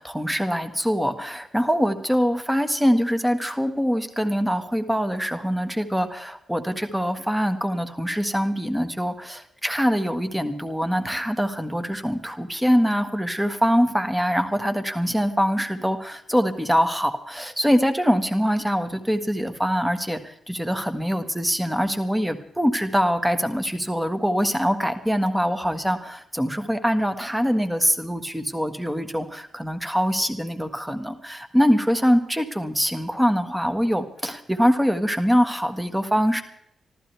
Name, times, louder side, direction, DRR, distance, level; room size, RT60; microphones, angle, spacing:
voice 1, 0.0-36.4, equal, 5° right, 9 dB, 1.7 m, -23 dB
25.0 x 14.5 x 3.5 m, 0.73 s
cardioid pair, 85°, 0 cm